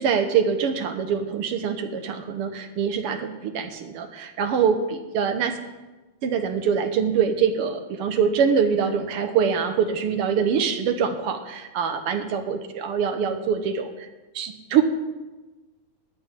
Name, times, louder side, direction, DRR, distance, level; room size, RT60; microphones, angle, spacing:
voice 1, 0.0-5.6 6.2-14.1 14.3-14.8, right 7 dB, 75° right, 6 dB, 1.3 m, -24 dB
10.0 x 9.1 x 8.9 m, 1.2 s
omnidirectional pair, 3.8 m